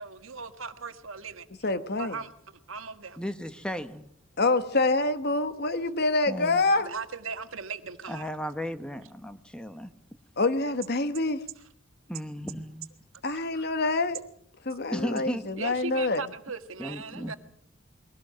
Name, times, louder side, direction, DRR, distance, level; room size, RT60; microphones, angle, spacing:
voice 1, 0.0-1.4 2.0-2.3 2.7-3.2 6.8-8.3 13.3-13.7 15.6-17.4, right 5 dB, 75° right, 1.6 m, -38 dB
voice 2, 1.6-2.2 4.4-6.9 10.4-11.4 13.2-14.2 14.6-16.2, left 3 dB, 50° left, 1.2 m, -26 dB
voice 3, 3.2-4.1 6.3-6.6 8.1-9.9 12.1-12.9 14.9-15.5 16.8-17.3, equal, 5° left, 1.2 m, -35 dB
22.5 x 17.0 x 7.6 m
head